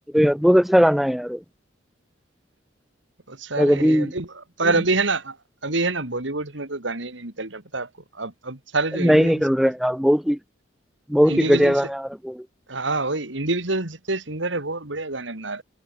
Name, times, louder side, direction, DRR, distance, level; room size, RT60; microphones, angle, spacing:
voice 1, 0.1-1.4 3.6-4.1 9.0-10.4 11.1-12.4, equal, ahead, 0.4 m, -19 dB
voice 2, 3.3-4.3 4.6-5.4 5.6-9.4 11.3-11.8 12.7-15.6, right 3 dB, 75° right, 3.0 m, -27 dB
head